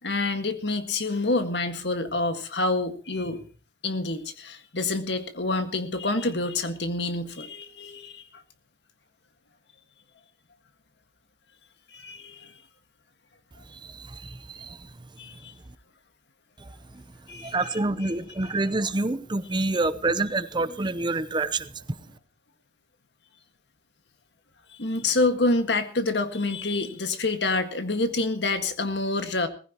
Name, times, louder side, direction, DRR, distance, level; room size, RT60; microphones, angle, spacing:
voice 1, 0.0-3.5 3.8-8.4 11.9-12.5 15.2-15.5 17.3-17.5 18.0-18.1 24.8-29.5, left 2 dB, 80° left, 8 dB, 1.8 m, -27 dB
voice 2, 13.7-14.9 16.6-22.0, right 2 dB, 25° right, 14 dB, 0.7 m, -28 dB
19.5 x 15.5 x 3.0 m, 0.37 s
head